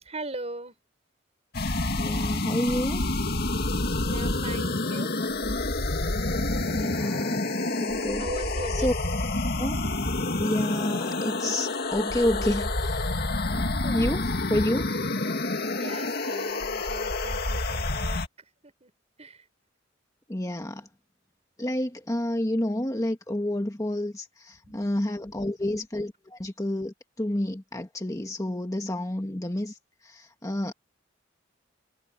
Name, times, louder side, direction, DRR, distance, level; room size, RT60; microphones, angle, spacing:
voice 1, 0.0-0.8 4.1-5.2 8.1-8.9 13.5-14.7 15.8-18.2 18.6-18.9 19.2-19.4 24.6-25.5, right 2 dB, 35° right, 5.7 m, -40 dB
sound 1, 1.5-18.3, left 2 dB, 55° left, 2.3 m, -28 dB
voice 2, 2.0-3.0 6.7-8.2 8.7-8.9 9.6-9.7 10.4-13.0 13.5-14.2 14.5-14.9 20.3-20.9 21.6-29.7 30.0-30.7, left 1 dB, 15° left, 1.4 m, -29 dB
head